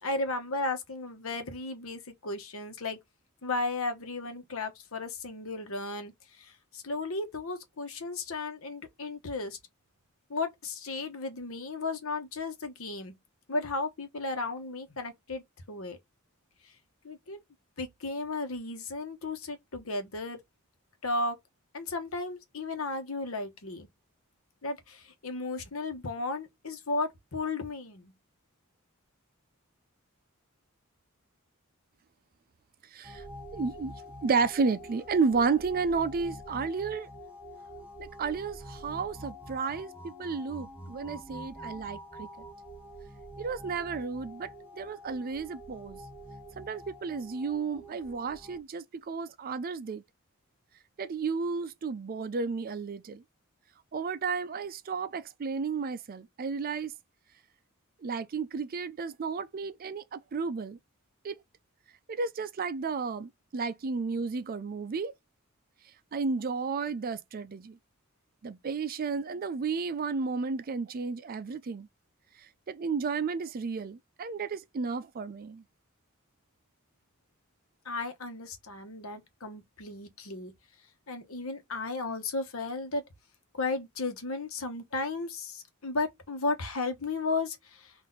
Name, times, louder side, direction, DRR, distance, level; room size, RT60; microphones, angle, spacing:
voice 1, 0.0-3.0 3.4-9.6 10.3-13.1 13.5-15.4 15.7-16.0 17.0-17.4 17.8-20.4 21.0-21.4 21.7-23.9 24.6-28.1 77.8-80.5 81.1-83.0 83.5-87.9, left 3 dB, 70° left, 1.1 m, -34 dB
voice 2, 32.9-33.3 33.5-33.9 34.2-37.1 38.0-42.3 43.4-46.0 46.6-50.0 51.0-53.2 53.9-56.9 58.0-60.8 61.2-61.4 62.1-65.1 66.1-67.8 68.4-71.9 72.4-75.6, right 5 dB, 45° right, 0.4 m, -32 dB
sound 1, 33.0-48.6, equal, 5° right, 0.9 m, -46 dB
4.1 x 2.6 x 3.9 m
head